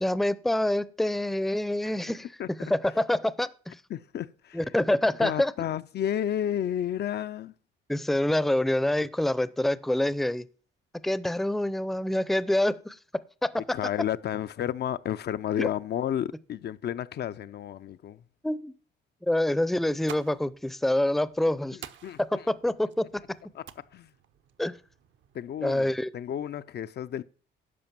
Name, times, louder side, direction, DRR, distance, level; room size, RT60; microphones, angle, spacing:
voice 1, 0.0-2.3 2.7-3.8 4.5-5.5 7.9-10.5 11.0-13.0 13.4-13.5 15.6-15.7 18.4-18.7 19.2-21.8 22.2-23.1 24.6-24.8 25.6-26.1, left 1 dB, ahead, 0.5 m, -26 dB
voice 2, 3.9-4.6 5.2-7.5 13.7-18.2 21.5-22.5 23.5-24.1 25.3-27.2, left 10 dB, 55° left, 0.5 m, -32 dB
sound 1, 19.8-25.8, right 10 dB, 70° right, 0.8 m, -50 dB
11.0 x 5.1 x 7.3 m
cardioid pair, 90°, 20 cm